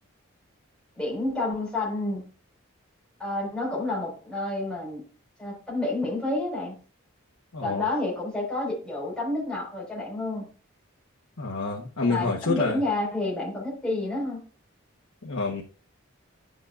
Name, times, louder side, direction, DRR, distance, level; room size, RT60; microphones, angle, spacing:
voice 1, 0.9-2.2 3.2-5.0 5.4-6.7 7.6-10.4 12.1-14.4, left 2 dB, 5° left, 4.8 m, -29 dB
voice 2, 7.5-7.9 11.4-12.8 15.2-15.6, left 3 dB, 85° left, 1.2 m, -27 dB
10.5 x 7.0 x 2.5 m
head